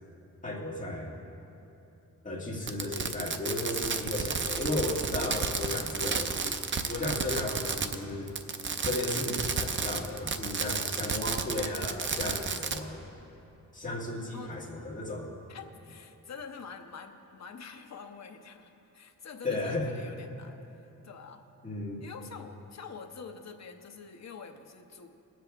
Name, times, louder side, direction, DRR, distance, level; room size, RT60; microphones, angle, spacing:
voice 1, 0.4-1.1 2.2-6.6 6.9-8.3 8.8-13.0 13.7-15.3 19.4-20.0 21.6-22.0, left 2 dB, 20° left, -3 dB, 1.7 m, -34 dB
Fireworks, 2.6-8.0 8.3-12.8, right 5 dB, 35° right, 0.5 m, -32 dB
voice 2, 15.5-20.6 21.0-21.4 22.0-25.1, left 5 dB, 50° left, 4 dB, 0.9 m, -46 dB
21.0 x 7.6 x 3.4 m, 2.9 s
wide cardioid pair, 150°, 34 cm